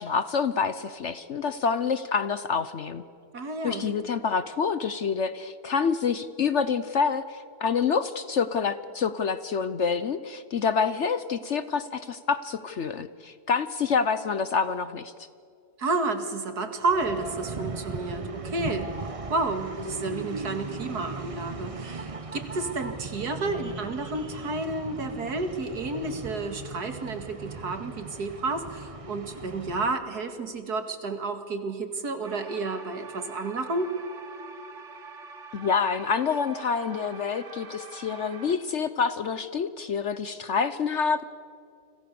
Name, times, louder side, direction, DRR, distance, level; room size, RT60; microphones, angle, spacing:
voice 1, 0.0-3.0 3.6-15.1 35.5-41.2, left 5 dB, 55° left, 13 dB, 0.9 m, -27 dB
voice 2, 3.3-4.1 15.8-33.9, right 3 dB, 70° right, 7 dB, 2.6 m, -31 dB
sound 1, 16.8-29.9, right 3 dB, 25° right, 0.9 m, -38 dB
sound 2, 32.2-38.5, right 4 dB, 50° right, 1.9 m, -45 dB
30.0 x 25.5 x 6.9 m, 2.4 s
omnidirectional pair, 1.7 m